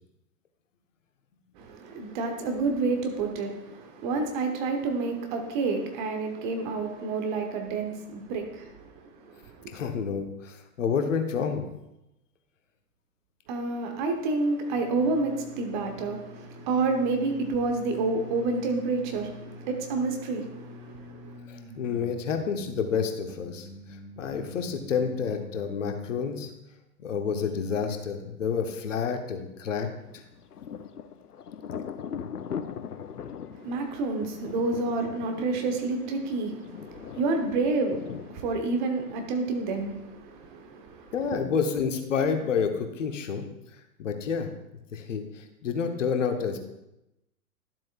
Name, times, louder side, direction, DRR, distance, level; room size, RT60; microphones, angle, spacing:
voice 1, 1.5-9.8 13.5-21.4 33.5-41.4, right 3 dB, 30° right, 1.1 m, -29 dB
voice 2, 9.7-11.6 21.5-23.7 24.2-26.5 27.0-29.9 32.5-32.6 41.1-43.5 44.0-44.5 44.9-46.6, left 6 dB, 55° left, 1.1 m, -29 dB
sound 1, 14.7-26.6, left 1 dB, 10° right, 1.5 m, -46 dB
Thunder, 30.1-39.6, left 7 dB, 80° left, 0.6 m, -41 dB
12.0 x 7.5 x 2.4 m
figure-of-eight pair, 115°, 46 cm